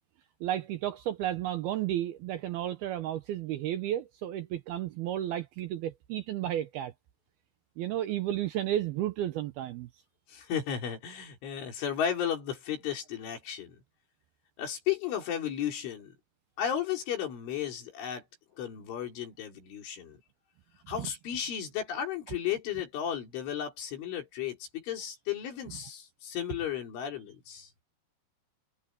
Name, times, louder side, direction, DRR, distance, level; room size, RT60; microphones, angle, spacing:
voice 1, 0.4-6.9 7.8-9.9 21.0-21.1, right 12 dB, 75° right, 2.3 m, -32 dB
voice 2, 10.3-13.8 14.6-16.1 16.6-18.2 18.6-20.2 20.9-27.7, left 9 dB, 85° left, 6.9 m, -34 dB
omnidirectional pair, 5.4 m